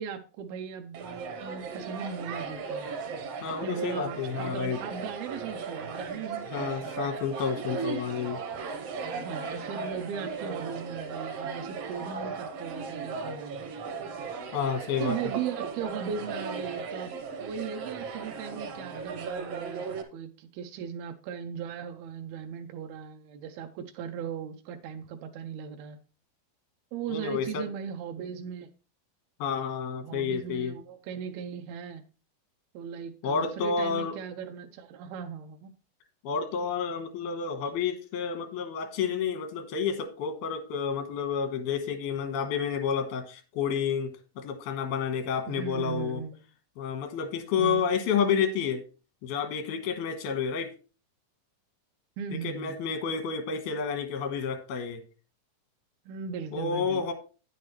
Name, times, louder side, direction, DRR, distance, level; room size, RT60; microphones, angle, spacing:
voice 1, 0.0-2.9 3.5-6.7 9.1-13.6 15.0-17.2 17.4-26.0 26.9-28.7 30.0-32.0 32.7-35.7 45.5-46.4 47.6-47.8 52.2-52.8 56.1-57.1, right 7 dB, 90° right, 5 dB, 2.6 m, -38 dB
sound 1, 0.9-20.0, right 5 dB, 70° right, 1.5 m, -37 dB
voice 2, 3.4-4.8 6.5-8.4 14.5-15.2 27.1-27.6 29.4-30.8 33.2-34.2 36.2-46.2 46.8-48.8 49.2-50.7 52.3-55.0 56.5-57.1, left 6 dB, 85° left, 7 dB, 3.1 m, -30 dB
9.5 x 9.2 x 3.1 m, 0.34 s
omnidirectional pair, 4.2 m